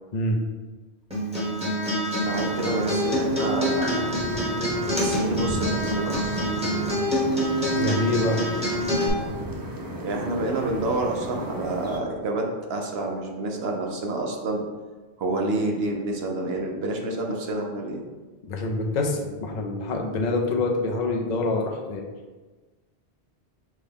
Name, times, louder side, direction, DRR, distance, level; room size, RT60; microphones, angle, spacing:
Acoustic guitar, 1.1-9.1, equal, 5° right, 1.1 m, -26 dB
sound 1, 2.2-12.0, right 1 dB, 35° right, 0.3 m, -35 dB
voice 1, 2.2-4.1 4.9-6.4 10.0-14.6 15.2-18.0, right 2 dB, 70° right, 1 dB, 0.9 m, -28 dB
voice 2, 7.8-8.4 18.4-22.0, left 2 dB, 50° left, 1 dB, 0.6 m, -26 dB
6.1 x 2.2 x 3.4 m, 1.3 s
omnidirectional pair, 1.1 m